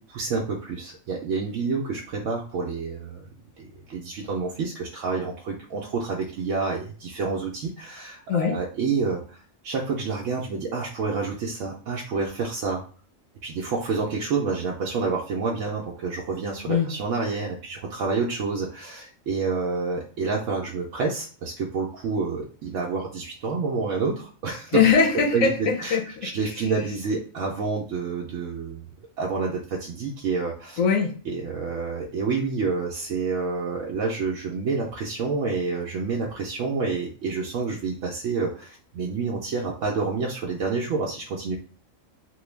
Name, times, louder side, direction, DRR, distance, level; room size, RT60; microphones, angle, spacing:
voice 1, 0.0-3.3 3.6-12.8 13.4-24.7 25.3-26.0 26.2-28.9 29.2-30.8 31.3-41.6, right 4 dB, 70° right, -2 dB, 0.9 m, -28 dB
voice 2, 24.7-26.0 30.8-31.1, left 6 dB, 80° left, 2 dB, 1.1 m, -21 dB
3.1 x 2.2 x 3.2 m, 0.39 s
omnidirectional pair, 1.4 m